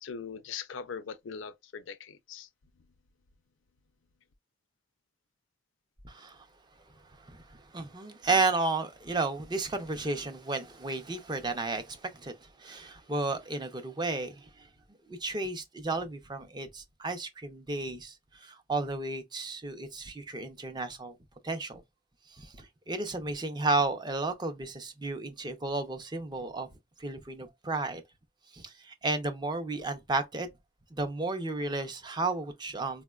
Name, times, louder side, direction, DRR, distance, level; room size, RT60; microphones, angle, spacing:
voice 1, 0.0-2.5, left 6 dB, 75° left, 0.4 m, -41 dB
voice 2, 6.0-6.5 7.2-14.7 15.1-21.2 21.4-21.8 22.3-26.7 27.0-28.0 28.5-30.5 30.9-33.0, right 3 dB, 20° right, 0.5 m, -33 dB
4.2 x 2.1 x 2.3 m
head